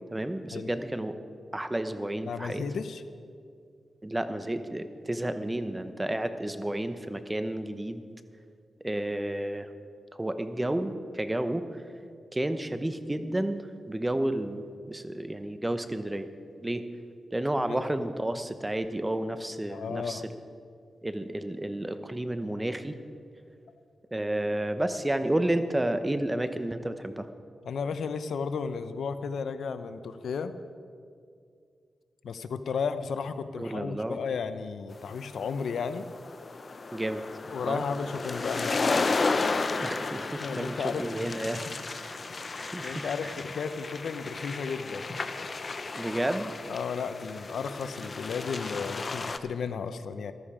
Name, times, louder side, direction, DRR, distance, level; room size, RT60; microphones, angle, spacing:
voice 1, 0.1-1.1 1.5-2.6 4.0-8.0 8.8-9.7 10.2-11.7 12.3-13.6 13.9-16.3 16.6-16.9 17.3-20.2 21.0-23.0 24.1-27.3 33.6-34.2 36.9-37.2 37.7-37.8 39.8-41.7 42.0-42.2 42.6-43.3 45.9-46.5, right 1 dB, 15° right, 10 dB, 0.9 m, -31 dB
voice 2, 2.3-3.0 17.6-17.8 19.7-20.2 27.6-30.5 32.2-36.1 37.5-38.8 40.4-41.4 41.7-41.8 42.3-42.5 42.8-45.0 46.7-50.3, left 5 dB, 80° left, 11 dB, 0.7 m, -34 dB
sound 1, 35.1-49.4, left 3 dB, 45° left, 0.7 m, -33 dB
14.5 x 13.0 x 5.0 m, 2.3 s
cardioid pair, 65°, 0 cm